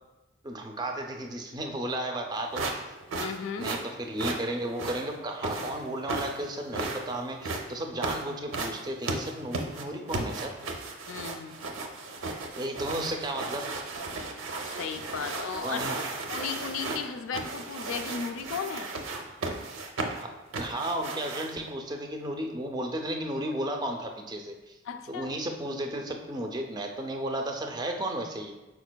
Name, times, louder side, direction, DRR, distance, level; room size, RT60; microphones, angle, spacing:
voice 1, 0.4-2.9 3.6-10.5 12.6-13.6 15.6-16.0 20.2-24.8 25.1-28.5, right 1 dB, 20° right, 3 dB, 0.4 m, -34 dB
sound 1, 2.5-21.7, right 3 dB, 85° right, 0.6 m, -35 dB
voice 2, 3.1-3.7 11.1-11.6 14.6-15.8 16.3-18.9 24.9-25.3, left 6 dB, 90° left, 8 dB, 0.4 m, -35 dB
5.0 x 4.6 x 2.2 m, 1.1 s
head